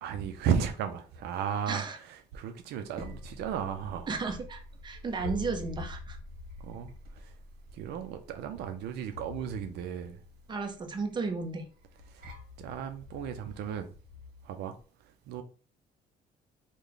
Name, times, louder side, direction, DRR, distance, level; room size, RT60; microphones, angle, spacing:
voice 1, 0.0-4.1 6.6-6.9 7.2-7.3 7.7-10.2 12.1-12.2 12.6-13.9 14.4-14.8 15.3-15.4, right 8 dB, 75° right, 0.5 m, -34 dB
voice 2, 1.7-2.0 4.1-6.2 10.5-11.6, right 4 dB, 25° right, 0.7 m, -34 dB
sound 1, 2.6-14.5, left 3 dB, 60° right, 1.2 m, -46 dB
3.2 x 2.2 x 3.7 m
cardioid pair, 110°, 17 cm